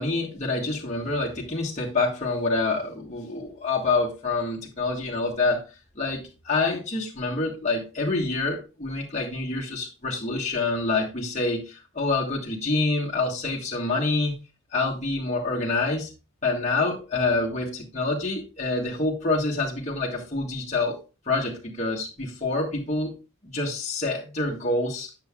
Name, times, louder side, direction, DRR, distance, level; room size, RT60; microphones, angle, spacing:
voice 1, 0.0-5.6 5.9-14.4 14.7-16.1 16.4-21.0 21.3-23.2 23.4-25.2, left 3 dB, 35° left, -4 dB, 1.4 m, -27 dB
9.2 x 6.8 x 2.4 m, 0.31 s
head